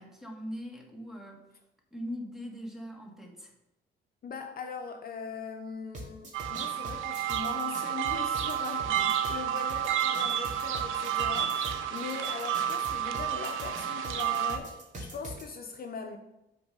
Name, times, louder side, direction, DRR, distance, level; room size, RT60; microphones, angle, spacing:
voice 1, 0.0-1.5 1.9-3.5 8.8-9.1, equal, ahead, 1.5 m, -41 dB
voice 2, 4.2-16.2, left 5 dB, 50° left, 0.7 m, -40 dB
sound 1, 5.9-15.4, right 1 dB, 40° right, 2.2 m, -43 dB
sound 2, 6.3-14.6, right 10 dB, 85° right, 0.5 m, -30 dB
6.8 x 4.0 x 5.3 m
cardioid pair, 90°, 20 cm